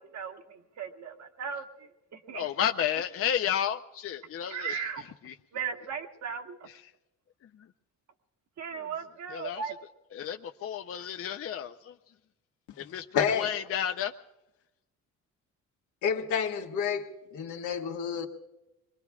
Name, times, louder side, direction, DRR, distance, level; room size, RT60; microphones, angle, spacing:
voice 1, 0.0-1.7 2.1-2.4 4.5-5.0 5.5-6.6 8.6-9.9, right 7 dB, 60° right, 1.5 m, -37 dB
voice 2, 2.3-5.3 6.7-6.9 7.4-7.7 8.8-8.9 9.3-9.6 10.1-11.9 12.8-14.1, left 9 dB, 50° left, 0.6 m, -32 dB
voice 3, 13.1-13.5 16.0-18.3, left 7 dB, 80° left, 1.6 m, -29 dB
26.5 x 21.5 x 2.4 m
cardioid pair, 90°, 30 cm